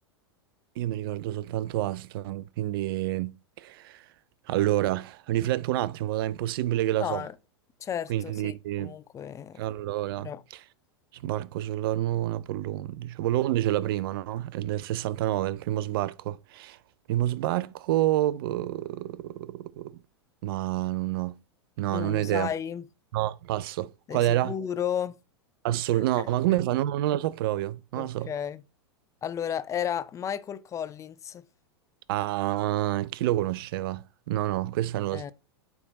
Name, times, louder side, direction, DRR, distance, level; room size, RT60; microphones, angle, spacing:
voice 1, 0.8-4.0 4.5-7.2 8.1-8.9 9.6-10.3 11.1-16.8 17.1-20.0 20.4-21.4 21.8-22.5 23.1-24.5 25.6-28.3 32.1-35.3, right 14 dB, 60° right, 0.5 m, -28 dB
voice 2, 7.0-7.3 7.8-9.6 10.2-10.4 21.9-22.8 24.1-25.2 27.9-28.6 29.2-31.4 35.1-35.3, left 9 dB, 20° left, 0.5 m, -33 dB
8.6 x 3.6 x 4.1 m
hypercardioid pair, 100°, 14 cm